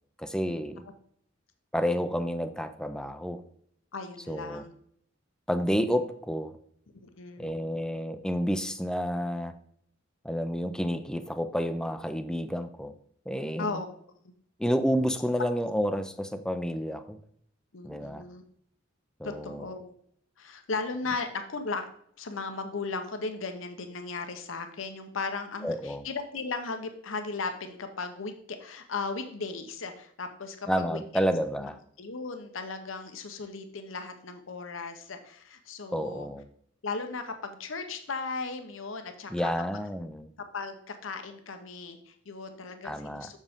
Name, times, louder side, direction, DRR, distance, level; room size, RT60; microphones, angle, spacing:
voice 1, 0.2-0.8 1.7-3.4 4.3-4.6 5.5-6.6 7.4-9.5 10.2-12.9 13.3-13.8 14.6-17.2 17.8-18.2 19.2-19.6 25.6-26.0 30.7-31.8 35.9-36.5 39.3-40.3 42.8-43.3, equal, 5° left, 10 dB, 0.5 m, -30 dB
voice 2, 3.9-4.7 7.0-7.5 13.6-13.9 17.7-18.4 19.2-19.9 20.4-21.9 22.2-31.0 31.6-31.7 32.0-36.3 36.8-39.5 40.5-43.4, left 4 dB, 80° left, 7 dB, 0.8 m, -36 dB
7.3 x 6.6 x 3.6 m, 0.66 s
head